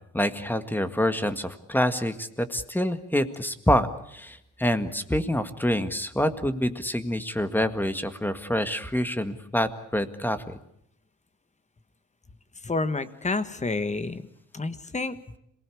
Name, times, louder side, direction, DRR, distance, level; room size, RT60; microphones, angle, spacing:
voice 1, 0.1-10.6, left 1 dB, 5° left, 9 dB, 1.8 m, -26 dB
voice 2, 12.6-14.2 14.5-15.4, left 3 dB, 25° left, 12 dB, 1.5 m, -29 dB
26.5 x 19.0 x 8.5 m, 0.76 s
cardioid pair, 90°, 30 cm